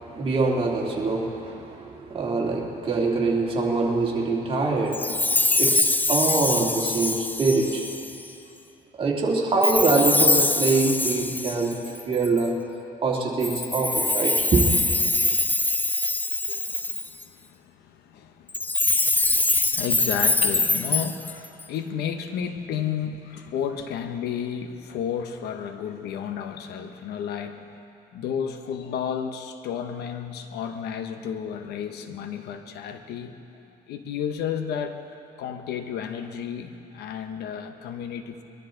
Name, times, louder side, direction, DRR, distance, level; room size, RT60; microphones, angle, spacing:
voice 1, 0.0-5.2 5.6-7.8 9.0-11.7 12.1-12.5 13.0-14.7, right 3 dB, 30° right, -3 dB, 2.7 m, -24 dB
Chime, 4.9-8.3 9.6-12.5 13.4-17.2 18.5-21.6, left 2 dB, 10° left, 0.4 m, -23 dB
voice 2, 16.5-27.6 28.1-33.4 33.7-35.0 35.4-38.4, left 8 dB, 75° left, 7 dB, 1.0 m, -32 dB
22.5 x 12.5 x 3.9 m, 2.6 s
cardioid pair, 110°, 17 cm